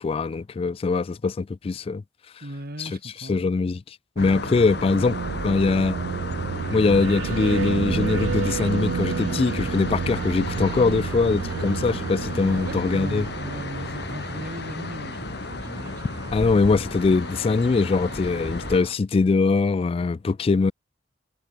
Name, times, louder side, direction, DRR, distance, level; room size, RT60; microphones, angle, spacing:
voice 1, 0.0-2.0 2.8-3.8 4.2-5.2 5.4-6.0 6.7-13.3 16.3-20.7, left 4 dB, 30° left, 0.3 m, -22 dB
voice 2, 2.4-3.5 12.5-16.6, right 1 dB, 55° right, 3.4 m, -38 dB
sound 1, 4.2-18.8, left 2 dB, 65° left, 2.2 m, -34 dB
sound 2, 4.2-14.4, right 6 dB, 90° right, 0.3 m, -30 dB
sound 3, 10.6-18.9, right 2 dB, 20° right, 1.2 m, -43 dB
head